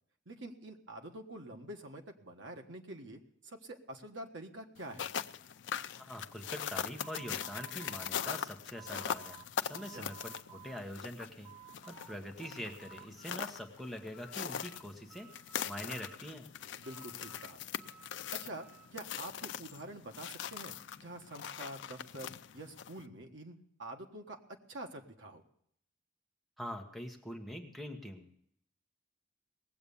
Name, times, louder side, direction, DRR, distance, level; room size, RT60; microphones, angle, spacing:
voice 1, 0.2-5.1 9.9-10.1 16.8-17.6 18.3-18.7 18.9-24.4 24.7-25.4, right 1 dB, 75° right, 3 dB, 1.5 m, -47 dB
sound 1, 4.8-23.0, left 8 dB, 70° left, 0.5 m, -42 dB
voice 2, 6.1-11.5 11.9-15.3 15.6-16.5 26.6-28.3, equal, ahead, 2 dB, 1.1 m, -44 dB
sound 2, 7.0-9.5 9.7-10.8 11.2-12.1 12.4-13.5 13.8-14.8 15.1-16.4 16.8-18.9, right 8 dB, 15° right, 1.6 m, -55 dB
19.0 x 7.9 x 7.0 m, 0.70 s
head